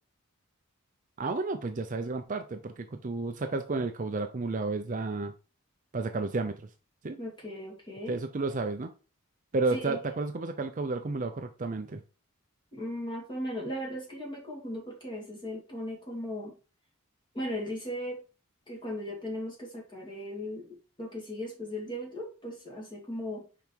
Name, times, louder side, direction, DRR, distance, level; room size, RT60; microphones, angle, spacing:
voice 1, 1.2-5.3 5.9-6.6 7.0-7.2 8.1-8.9 9.5-12.0, right 3 dB, 35° right, 7 dB, 0.5 m, -32 dB
voice 2, 7.2-8.2 9.7-10.0 12.7-16.5 17.3-18.2 18.7-23.4, equal, 20° left, -1 dB, 2.4 m, -37 dB
5.3 x 4.6 x 4.5 m, 0.34 s
head